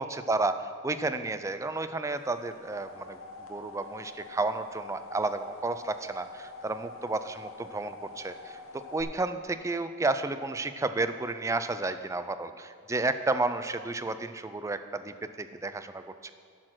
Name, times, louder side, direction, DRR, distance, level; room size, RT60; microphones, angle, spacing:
voice 1, 0.0-3.2 3.5-16.3, right 3 dB, 15° right, 10 dB, 0.3 m, -32 dB
sound 1, 2.3-9.0, left 3 dB, 65° left, 1.0 m, -46 dB
10.0 x 6.5 x 6.1 m, 2.1 s
head